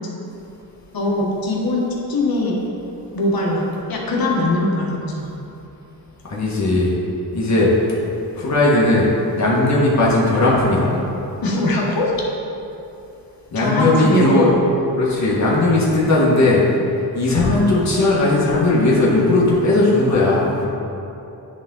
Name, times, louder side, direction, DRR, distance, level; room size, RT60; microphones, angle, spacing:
voice 1, 0.9-2.6 3.1-5.3 11.4-12.1 13.5-14.5, left 2 dB, 60° left, -3 dB, 1.5 m, -21 dB
voice 2, 6.2-6.9 7.3-7.7 8.3-9.0 9.3-11.0 13.5-14.5 15.0-16.6 17.1-20.7, left 2 dB, 40° left, -6 dB, 1.6 m, -17 dB
10.0 x 3.7 x 3.9 m, 2.8 s
cardioid pair, 100°, 40 cm